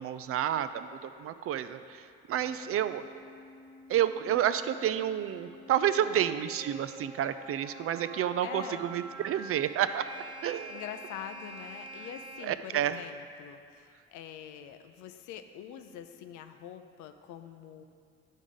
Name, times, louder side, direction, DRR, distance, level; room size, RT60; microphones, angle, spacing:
voice 1, 0.0-2.0 2.3-3.0 3.9-10.0 10.4-10.7 12.4-13.0, right 10 dB, 50° right, 12 dB, 0.4 m, -30 dB
voice 2, 2.3-2.8 6.0-6.3 8.4-8.9 10.7-17.8, left 9 dB, 70° left, 8 dB, 0.6 m, -45 dB
sound 1, 2.8-12.4, right 1 dB, 15° right, 0.8 m, -47 dB
10.5 x 3.6 x 5.4 m, 2.3 s
hypercardioid pair, 55°, 31 cm